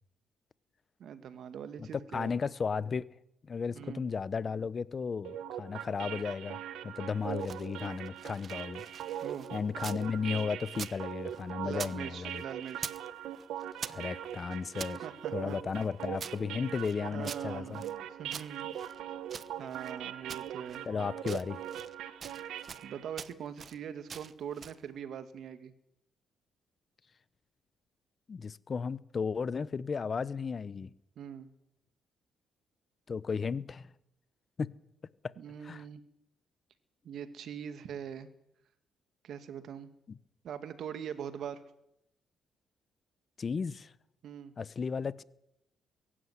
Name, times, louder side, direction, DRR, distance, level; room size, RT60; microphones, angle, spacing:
voice 1, 1.0-2.3 3.8-4.0 9.2-9.5 11.6-12.9 15.0-15.6 17.1-18.7 19.6-20.9 22.8-25.7 31.2-31.5 35.4-36.0 37.0-38.3 39.2-39.9 40.4-41.6 44.2-44.5, right 8 dB, 70° right, 2.1 m, -42 dB
voice 2, 1.8-3.1 3.5-8.9 9.5-12.4 13.9-15.0 15.3-17.8 20.9-21.6 28.3-30.9 33.1-33.9 34.6-34.7 35.2-35.3 35.6-35.8 43.4-43.9 44.6-45.2, left 5 dB, 40° left, 0.9 m, -34 dB
sound 1, 5.2-23.1, right 10 dB, 85° right, 1.3 m, -41 dB
sound 2, 7.2-10.1 10.3-12.0 12.2-13.1 13.3-15.0 15.5-18.0 18.3-19.9 20.3-20.9 21.2-21.9 22.2-22.9 23.2-23.8 24.1-24.8, right 6 dB, 45° right, 1.0 m, -45 dB
22.5 x 12.5 x 9.7 m
cardioid pair, 90°, 0 cm